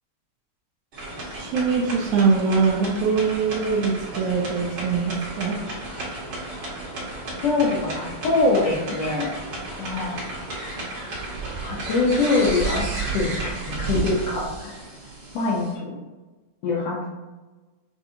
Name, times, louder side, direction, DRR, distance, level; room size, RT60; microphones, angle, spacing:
sound 1, 0.9-15.7, right 3 dB, 45° right, 1.8 m, -33 dB
voice 1, 1.3-5.6, right 5 dB, 75° right, 0 dB, 1.8 m, -22 dB
voice 2, 7.4-9.4 9.8-10.2 11.6-14.8 15.3-16.0 16.6-17.1, left 3 dB, 70° left, -5 dB, 1.6 m, -24 dB
6.8 x 2.6 x 2.7 m, 1.2 s
omnidirectional pair, 3.6 m